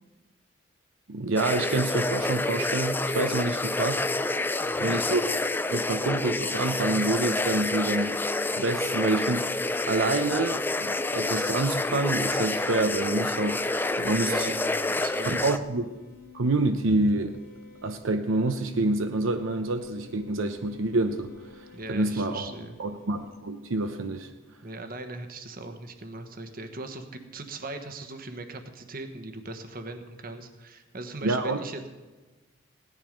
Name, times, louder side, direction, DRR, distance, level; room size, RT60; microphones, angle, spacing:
voice 1, 1.1-4.1 4.8-5.2 5.7-8.2 8.5-9.5 9.9-13.6 14.0-14.5 15.3-15.9 16.3-17.4 17.8-22.5 22.8-24.3 31.2-31.6, right 2 dB, 80° right, 7 dB, 0.8 m, -27 dB
sound 1, 1.4-15.6, left 2 dB, 10° left, 0.4 m, -28 dB
electric toothbrush, 4.4-23.3, left 7 dB, 50° left, 2.3 m, -53 dB
voice 2, 4.6-5.0 14.1-15.6 21.7-22.8 24.6-31.9, right 2 dB, 45° right, 7 dB, 1.2 m, -39 dB
17.0 x 10.5 x 5.2 m, 1.2 s
head